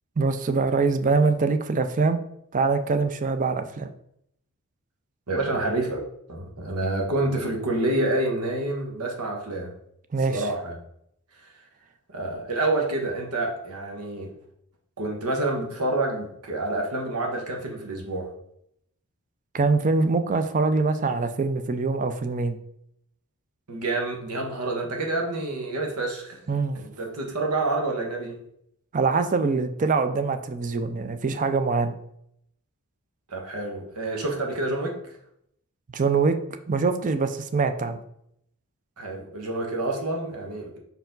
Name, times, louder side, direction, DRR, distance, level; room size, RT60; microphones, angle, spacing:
voice 1, 0.2-2.2 2.5-3.9 10.1-10.5 19.5-22.6 26.5-26.8 28.9-31.9 35.9-36.3 36.7-38.0, right 4 dB, 35° right, 9 dB, 0.4 m, -23 dB
voice 2, 5.3-6.0 6.3-9.7 10.3-10.8 11.4-11.5 12.1-14.3 15.0-18.3 23.7-26.4 26.7-28.4 33.3-35.2 39.0-40.8, right 2 dB, 90° right, 1 dB, 1.3 m, -28 dB
5.5 x 4.6 x 3.8 m, 0.73 s
head